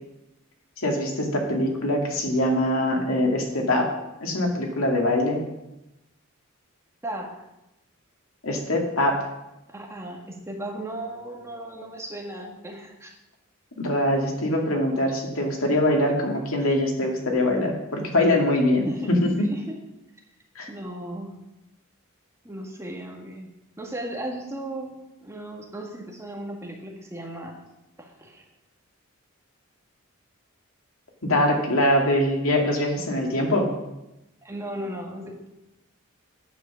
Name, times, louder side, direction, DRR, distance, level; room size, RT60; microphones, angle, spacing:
voice 1, 0.8-3.9 4.2-5.5 8.4-9.2 13.8-19.5 20.6-20.7 31.2-33.8, left 1 dB, 80° left, 1 dB, 2.2 m, -23 dB
voice 2, 9.7-13.1 18.8-19.6 20.7-21.4 22.4-23.5 23.8-27.6 28.0-28.4 34.4-35.5, right 1 dB, 15° right, 0 dB, 1.6 m, -36 dB
9.4 x 8.0 x 6.3 m, 0.93 s
head